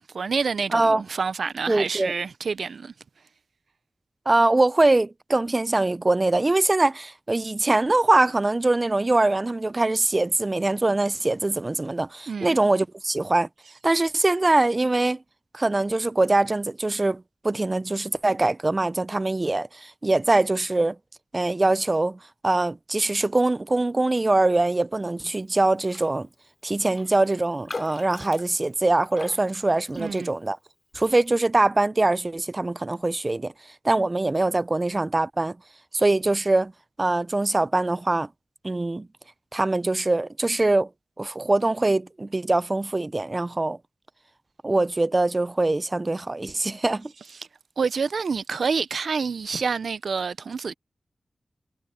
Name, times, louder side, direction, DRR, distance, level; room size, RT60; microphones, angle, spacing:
voice 1, 0.1-2.9 12.3-12.6 30.0-30.3 47.4-47.5 47.8-50.7, right 5 dB, 85° right, 0.6 m, -28 dB
voice 2, 0.7-1.0 1.7-2.1 4.3-13.5 13.8-15.2 15.5-21.0 21.3-22.2 22.4-26.3 26.6-30.6 30.9-33.5 33.8-35.6 35.9-36.7 37.0-38.3 38.6-39.1 39.5-40.9 41.2-43.8 44.6-47.1, right 2 dB, 40° right, 0.4 m, -23 dB
Raindrop, 25.8-26.2 26.4-26.5 26.9-30.5 30.9-31.2, left 3 dB, 55° left, 2.6 m, -41 dB
cardioid pair, 45°, 0 cm